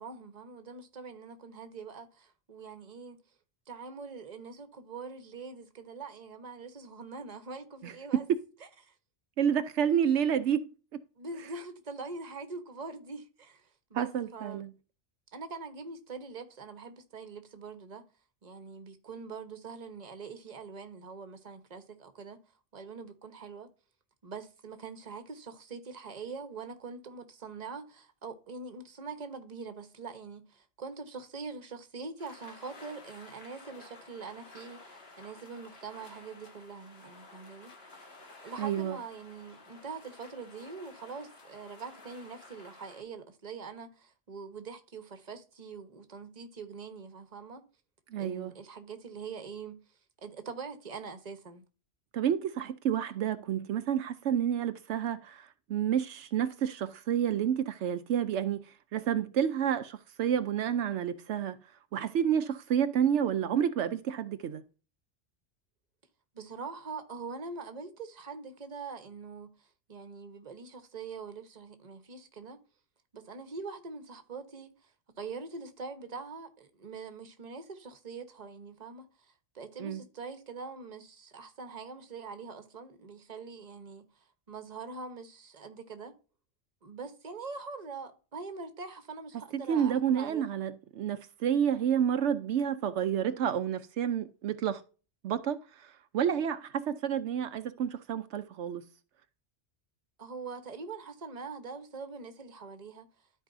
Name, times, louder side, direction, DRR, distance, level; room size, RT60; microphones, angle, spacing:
voice 1, 0.0-3.2 3.7-8.3 8.8-8.9 11.2-14.6 15.3-18.0 18.4-22.4 22.7-23.7 24.2-37.7 38.4-47.6 48.2-49.8 50.2-51.7 66.3-72.6 73.1-74.9 75.2-84.1 84.5-86.1 86.8-90.5 100.2-103.1, right 4 dB, 40° right, 1.1 m, -43 dB
voice 2, 7.8-8.4 9.4-11.0 13.9-14.7 38.6-39.0 48.1-48.5 52.1-58.7 58.9-61.6 61.9-64.6 79.8-80.0 89.5-94.8 95.2-98.9, right 9 dB, 80° right, 0.9 m, -29 dB
sound 1, 32.2-43.0, left 3 dB, 60° left, 1.8 m, -53 dB
13.0 x 4.7 x 2.6 m
omnidirectional pair, 1.2 m